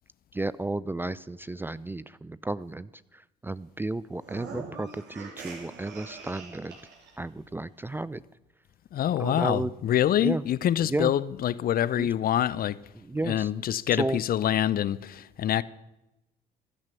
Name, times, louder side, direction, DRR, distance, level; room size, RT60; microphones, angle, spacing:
voice 1, 0.3-6.7 7.2-8.2 9.2-9.7 10.2-10.4 10.8-11.1 12.0-12.1 13.0-13.5 13.9-14.2, right 2 dB, 10° right, 0.5 m, -33 dB
sound 1, 4.2-7.2, right 4 dB, 55° right, 3.5 m, -43 dB
voice 2, 8.9-12.8 13.2-15.6, left 11 dB, 45° left, 0.7 m, -26 dB
15.0 x 12.0 x 7.0 m
hypercardioid pair, 60°, 21 cm